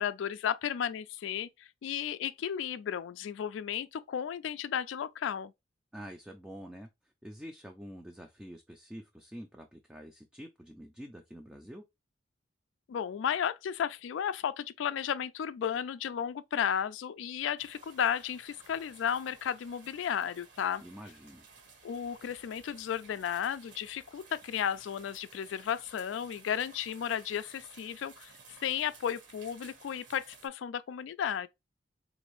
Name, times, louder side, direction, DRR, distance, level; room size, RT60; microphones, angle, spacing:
voice 1, 0.0-5.5 12.9-20.8 21.8-28.3 28.6-31.5, left 8 dB, 80° left, 0.3 m, -34 dB
voice 2, 5.9-11.8 20.8-21.5, equal, 5° right, 0.3 m, -47 dB
sound 1, 17.6-30.5, right 4 dB, 75° right, 1.5 m, -56 dB
3.9 x 2.6 x 3.0 m
head